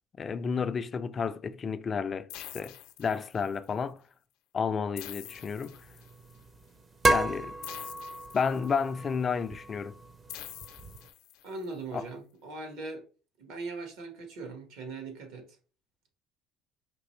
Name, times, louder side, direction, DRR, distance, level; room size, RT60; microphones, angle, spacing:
voice 1, 0.2-4.0 4.5-5.8 7.1-7.6 8.3-10.0 11.9-12.1, left 6 dB, 30° left, 0.3 m, -31 dB
sound 1, 2.3-3.6 5.0-6.3 7.6-9.0 10.3-11.6, left 13 dB, 85° left, 0.6 m, -46 dB
sound 2, 5.3-11.1, right 2 dB, 25° right, 0.5 m, -34 dB
voice 2, 11.4-13.0 13.4-15.5, right 3 dB, 75° right, 1.5 m, -40 dB
5.1 x 3.1 x 3.2 m
cardioid pair, 125°, 0 cm